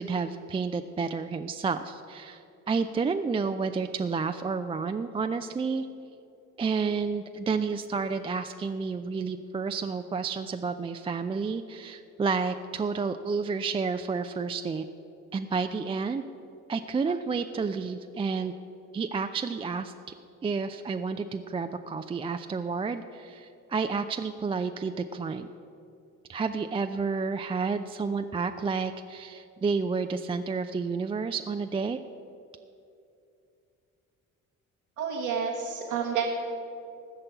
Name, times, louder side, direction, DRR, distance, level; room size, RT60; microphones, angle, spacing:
voice 1, 0.0-5.9 6.6-14.8 15.3-16.2 16.7-18.5 18.9-19.9 20.4-25.5 26.3-32.0, right 5 dB, 15° right, 7 dB, 0.4 m, -30 dB
voice 2, 35.0-36.3, right 6 dB, 80° right, -5 dB, 1.3 m, -29 dB
15.0 x 6.6 x 8.2 m, 2.6 s
figure-of-eight pair, 45°, 41 cm